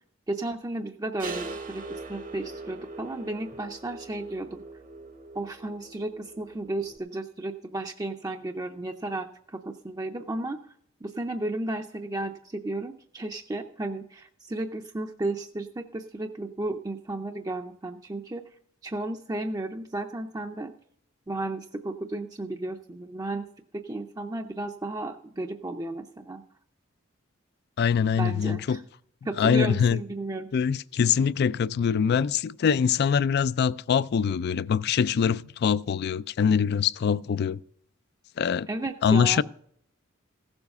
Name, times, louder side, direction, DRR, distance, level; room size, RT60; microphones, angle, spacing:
voice 1, 0.3-4.6 5.3-10.6 11.0-18.4 18.8-20.7 21.3-23.5 23.7-26.4 28.2-28.8 29.2-30.5 38.7-39.4, right 2 dB, 20° right, 0.5 m, -33 dB
sound 1, 1.2-7.0, right 3 dB, 45° right, 0.9 m, -41 dB
voice 2, 27.8-28.8 29.4-30.0 30.5-37.6 38.4-38.7 39.0-39.4, left 7 dB, 55° left, 0.3 m, -23 dB
15.5 x 7.1 x 5.4 m
head